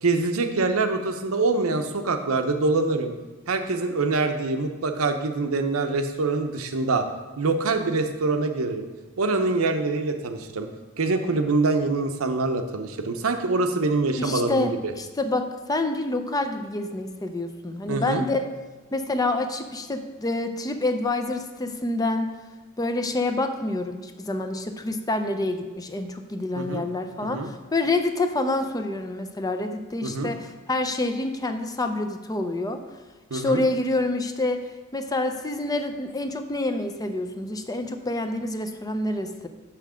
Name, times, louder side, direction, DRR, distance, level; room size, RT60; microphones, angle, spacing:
voice 1, 0.0-3.1 3.5-7.1 7.4-8.9 9.2-10.7 11.0-14.9 17.9-18.2 26.6-26.8 27.2-27.5 30.0-30.3 33.3-33.6, right 3 dB, 85° right, 6 dB, 0.7 m, -25 dB
voice 2, 14.2-18.5 18.9-22.3 22.8-32.8 33.3-39.5, left 2 dB, 20° left, 7 dB, 0.5 m, -27 dB
6.4 x 5.9 x 5.0 m, 1.3 s
head